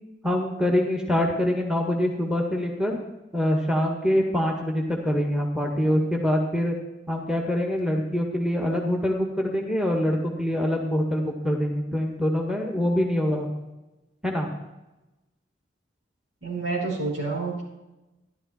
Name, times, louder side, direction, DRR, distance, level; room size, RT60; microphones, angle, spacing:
voice 1, 0.2-3.0 3.3-6.7 7.1-13.5 14.2-14.5, left 1 dB, 5° right, 1 dB, 1.7 m, -24 dB
voice 2, 16.4-17.6, right 3 dB, 85° right, -2 dB, 5.1 m, -28 dB
13.0 x 11.5 x 4.4 m, 1.0 s
head